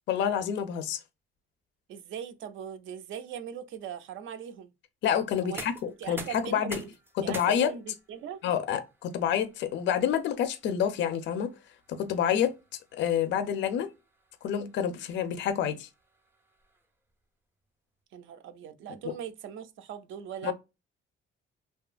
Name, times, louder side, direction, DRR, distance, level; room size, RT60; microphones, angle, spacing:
voice 1, 0.1-1.0 5.0-6.8 7.2-7.7 8.4-11.5 11.9-12.5 13.0-13.9 14.4-15.9 20.4-20.5, left 9 dB, 60° left, 0.4 m, -28 dB
voice 2, 1.9-4.7 5.4-5.7 6.0-6.9 7.2-8.4 18.1-20.5, right 9 dB, 70° right, 0.4 m, -40 dB
sound 1, 5.3-17.1, right 2 dB, 10° right, 0.4 m, -49 dB
2.7 x 2.3 x 2.3 m
cardioid pair, 175°, 21 cm